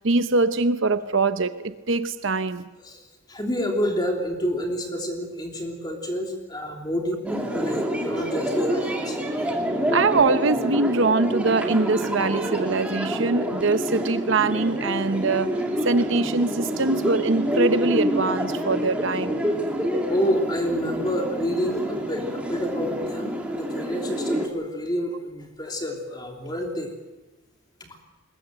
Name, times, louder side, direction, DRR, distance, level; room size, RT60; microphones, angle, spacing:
voice 1, 0.0-2.7 9.9-19.4, right 3 dB, 55° right, 11 dB, 0.8 m, -23 dB
voice 2, 2.8-9.5 20.1-26.9, equal, 20° left, 2 dB, 3.1 m, -29 dB
sound 1, 7.3-24.5, equal, 5° right, 2.4 m, -27 dB
21.5 x 20.5 x 7.8 m, 1.1 s
head